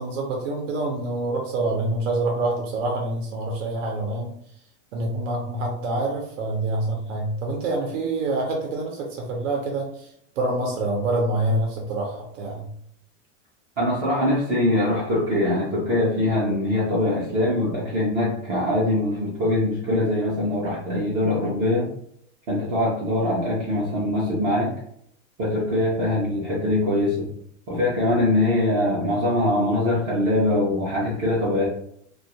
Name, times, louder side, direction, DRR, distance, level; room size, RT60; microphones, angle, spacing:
voice 1, 0.0-4.3 4.9-12.7, right 2 dB, 80° right, 1 dB, 0.7 m, -26 dB
voice 2, 13.8-21.9 22.5-24.7 25.4-27.3 27.7-31.7, left 1 dB, 25° right, -7 dB, 0.3 m, -23 dB
2.3 x 2.3 x 2.7 m, 0.69 s
supercardioid pair, 165°, 38 cm